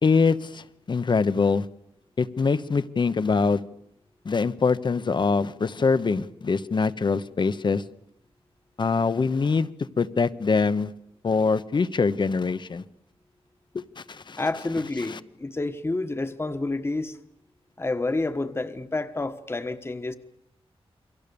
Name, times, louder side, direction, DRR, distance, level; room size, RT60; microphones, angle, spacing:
voice 1, 0.0-1.7 2.2-3.6 4.2-7.8 8.8-9.7 10.0-10.9 11.2-12.8 13.7-14.4 15.1-15.2, left 4 dB, 50° left, 1.0 m, -24 dB
voice 2, 14.4-17.2 17.8-20.2, left 2 dB, 25° left, 1.3 m, -29 dB
29.0 x 23.5 x 7.0 m
wide cardioid pair, 115°, 10 cm